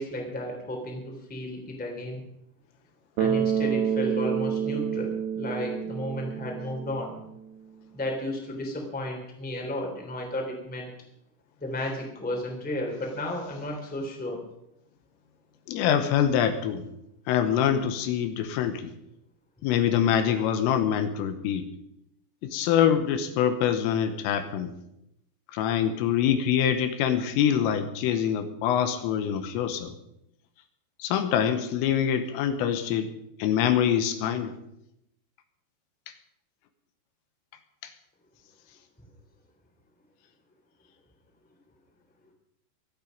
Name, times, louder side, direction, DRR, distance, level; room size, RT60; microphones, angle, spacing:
voice 1, 0.0-2.2 3.2-7.2 7.9-10.9 11.6-14.4, left 1 dB, 5° left, 1 dB, 1.9 m, -33 dB
Bass guitar, 3.2-7.4, right 8 dB, 80° right, 4.3 m, -28 dB
voice 2, 15.7-16.9 17.3-18.9 19.6-21.6 22.4-24.7 25.5-29.9 31.0-33.1 33.4-34.5 37.8-37.9, left 9 dB, 80° left, 9 dB, 3.5 m, -25 dB
24.5 x 8.8 x 5.3 m, 0.82 s
omnidirectional pair, 6.0 m